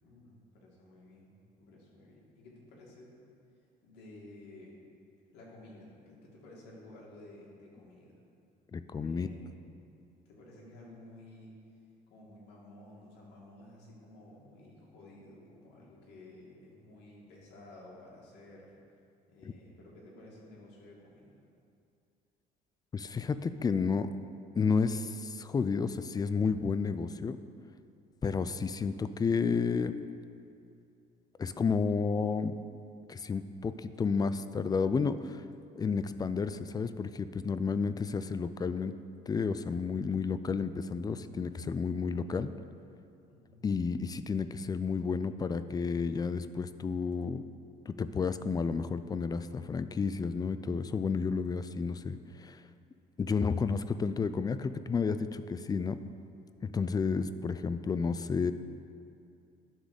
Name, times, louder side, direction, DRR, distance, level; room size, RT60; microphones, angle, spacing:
voice 1, 0.0-3.1 3.8-4.8 5.3-8.1 9.0-9.6 10.3-11.5 12.1-18.7 19.3-21.3 43.3-43.7, left 1 dB, 85° left, -4 dB, 2.3 m, -53 dB
voice 2, 8.7-9.3 22.9-24.1 24.5-27.4 28.2-29.9 31.4-32.5 33.1-35.4 35.8-39.0 39.3-42.5 43.6-47.4 47.9-52.6 53.2-56.0 56.6-58.5, left 5 dB, 25° left, 12 dB, 0.3 m, -31 dB
11.5 x 3.9 x 6.6 m, 2.5 s
cardioid pair, 110°, 17 cm